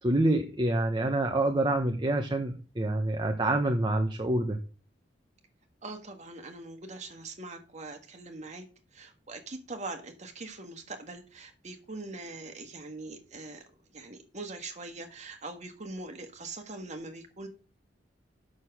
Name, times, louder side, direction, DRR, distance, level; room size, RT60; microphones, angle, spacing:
voice 1, 0.0-4.6, right 1 dB, 25° right, 4 dB, 0.9 m, -27 dB
voice 2, 5.8-8.7 8.9-13.6 13.9-17.5, right 2 dB, 40° right, 4 dB, 1.6 m, -42 dB
7.4 x 6.4 x 6.0 m, 0.35 s
head